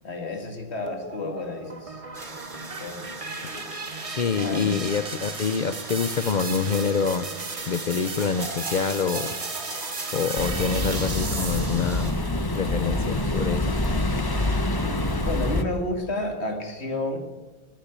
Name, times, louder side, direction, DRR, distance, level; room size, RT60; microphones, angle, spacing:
voice 1, 0.0-2.0 2.8-3.0 4.4-4.9 15.2-17.2, left 2 dB, 85° left, 5 dB, 2.4 m, -31 dB
sound 1, 0.9-12.0, right 3 dB, 35° right, 1.1 m, -36 dB
sound 2, 2.1-12.1, right 2 dB, 50° right, 2.8 m, -39 dB
voice 2, 4.1-7.3 7.7-9.3 10.1-12.1 12.6-13.7, left 6 dB, 50° left, 11 dB, 0.7 m, -26 dB
sound 3, 10.4-15.6, left 2 dB, 20° left, 0.9 m, -26 dB
15.0 x 10.0 x 8.2 m, 1.3 s
omnidirectional pair, 1.1 m